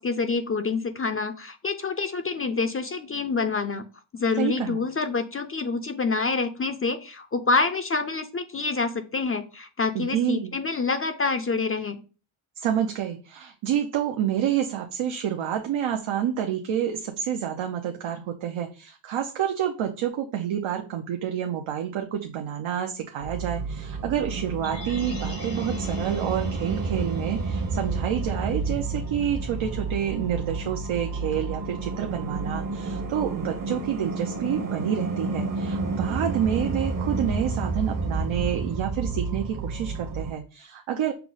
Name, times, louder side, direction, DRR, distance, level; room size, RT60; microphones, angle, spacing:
voice 1, 0.0-3.8 4.1-12.0, left 4 dB, 30° left, 8 dB, 0.4 m, -27 dB
voice 2, 4.4-4.8 9.9-10.5 12.6-41.1, right 9 dB, 85° right, 3 dB, 0.7 m, -28 dB
sound 1, 23.2-40.3, right 3 dB, 45° right, 0.8 m, -30 dB
sound 2, 24.6-28.8 29.1-29.2, left 1 dB, 85° left, 1.9 m, -45 dB
5.7 x 2.0 x 3.8 m, 0.35 s
cardioid pair, 85°, 46 cm